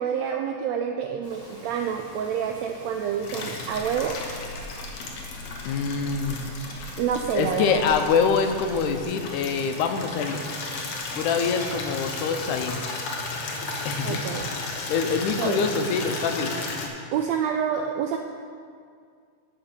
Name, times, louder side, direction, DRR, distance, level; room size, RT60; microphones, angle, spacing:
voice 1, 0.0-4.2 7.0-7.9 14.0-14.5 15.4-15.6 17.1-18.2, right 8 dB, 80° right, 3 dB, 1.6 m, -27 dB
Bird vocalization bird call bird song, 1.2-12.8, equal, 30° left, 3.0 m, -46 dB
Water tap faucet / Liquid, 3.2-16.9, left 3 dB, 65° left, 2.1 m, -34 dB
sound 1, 3.7-9.0, left 2 dB, 55° right, 3.7 m, -42 dB
voice 2, 5.7-6.4 7.3-10.4 11.2-12.8 13.9-14.2 14.9-16.5, left 5 dB, 90° left, 6 dB, 2.2 m, -25 dB
10.0 x 6.1 x 6.6 m, 2.2 s
omnidirectional pair, 3.4 m